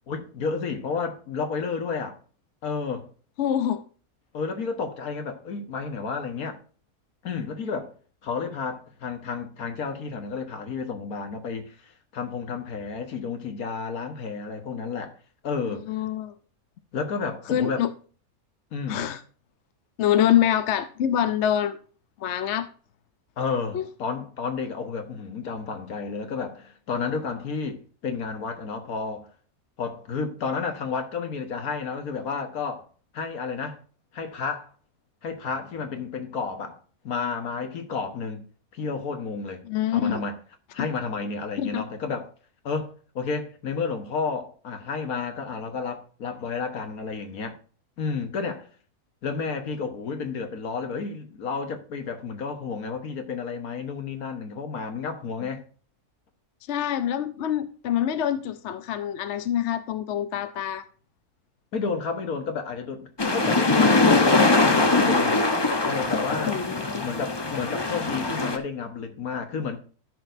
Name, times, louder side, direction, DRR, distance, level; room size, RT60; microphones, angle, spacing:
voice 1, 0.1-2.2 2.6-3.1 4.3-6.6 7.2-7.9 8.2-15.2 15.4-15.9 16.9-17.8 18.7-19.1 23.4-29.3 29.8-32.9 33.1-33.8 34.1-34.7 35.2-36.8 37.0-38.4 38.7-39.6 39.9-40.4 40.7-42.3 42.6-47.6 48.0-48.7 49.2-55.6 61.7-65.4 65.8-66.6 67.0-69.8, left 5 dB, 75° left, 1.7 m, -31 dB
voice 2, 3.4-3.8 15.9-16.3 17.5-17.9 18.9-19.2 20.0-21.8 22.2-22.7 23.7-23.8 39.6-40.2 40.8-40.9 41.6-41.8 56.7-60.9 66.4-67.1, left 10 dB, 60° left, 0.9 m, -25 dB
sound 1, 63.2-68.6, left 3 dB, 25° left, 0.7 m, -22 dB
14.0 x 6.3 x 2.6 m
omnidirectional pair, 1.6 m